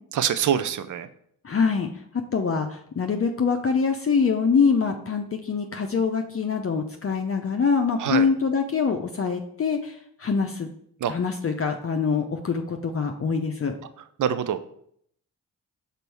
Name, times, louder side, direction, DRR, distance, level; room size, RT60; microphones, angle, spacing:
voice 1, 0.1-1.1 8.0-8.3 11.0-11.1 14.2-14.6, right 9 dB, 50° right, 11 dB, 0.6 m, -24 dB
voice 2, 1.4-1.9 2.3-10.7 11.1-13.7, left 5 dB, 35° left, 3 dB, 0.6 m, -24 dB
5.3 x 4.1 x 4.6 m, 0.68 s
supercardioid pair, 50°, 38 cm